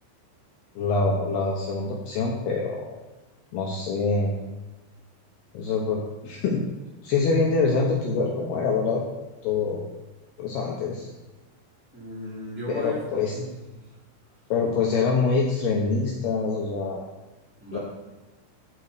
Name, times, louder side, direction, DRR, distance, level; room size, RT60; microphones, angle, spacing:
voice 1, 0.8-3.0 3.5-4.3 5.5-6.6 7.0-9.0 9.4-9.9 10.4-11.1 12.7-13.3 14.5-17.0 17.7-17.8, left 4 dB, 70° left, -1 dB, 2.7 m, -25 dB
voice 2, 11.9-13.9 17.6-17.8, right 1 dB, 5° right, -8 dB, 2.2 m, -36 dB
15.0 x 5.0 x 6.8 m, 1.1 s
omnidirectional pair, 5.6 m